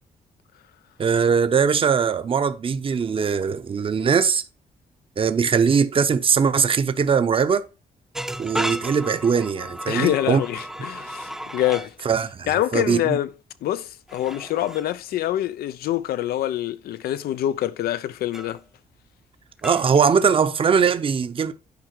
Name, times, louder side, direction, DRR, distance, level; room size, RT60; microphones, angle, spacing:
voice 1, 1.0-4.4 5.2-7.7 8.4-10.4 12.0-13.2 19.6-21.5, right 6 dB, 35° right, 0.7 m, -21 dB
sound 1, 8.1-11.9 14.1-14.9 18.3-18.6 19.6-20.6, right 1 dB, 5° right, 0.6 m, -33 dB
voice 2, 9.9-11.9 12.5-13.3 13.6-18.6, left 13 dB, 85° left, 0.6 m, -25 dB
9.5 x 4.9 x 4.4 m
cardioid pair, 115°, 15 cm